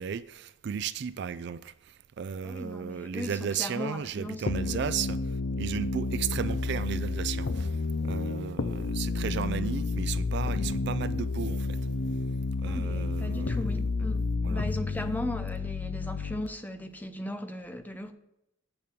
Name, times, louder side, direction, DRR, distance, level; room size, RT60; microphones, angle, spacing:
voice 1, 0.0-11.8 12.6-13.5 14.4-14.6, right 7 dB, 55° right, 0.4 m, -35 dB
voice 2, 2.4-4.8 12.6-18.1, left 1 dB, 10° left, 0.7 m, -37 dB
sound 1, 4.5-16.5, left 3 dB, 60° left, 0.5 m, -30 dB
8.9 x 5.3 x 6.6 m
head